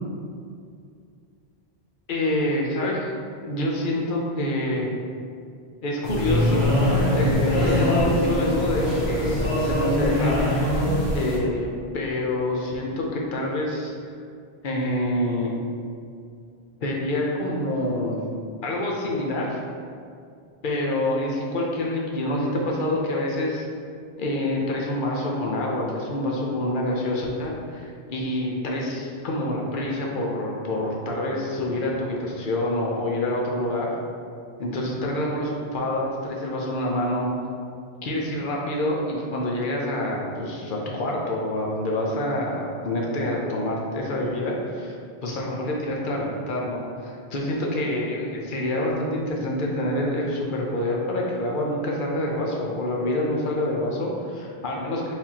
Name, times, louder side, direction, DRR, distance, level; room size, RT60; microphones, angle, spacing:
voice 1, 2.1-3.1 3.5-4.9 5.8-6.6 7.1-10.9 11.1-13.9 14.6-15.5 16.8-18.2 18.6-19.6 20.6-23.7 24.2-33.9 34.6-37.3 38.0-45.0 45.2-55.1, left 1 dB, 55° left, -2 dB, 0.8 m, -27 dB
sound 1, 6.0-11.4, left 1 dB, 80° left, 1.3 m, -22 dB
4.7 x 3.6 x 2.8 m, 2.3 s
omnidirectional pair, 1.1 m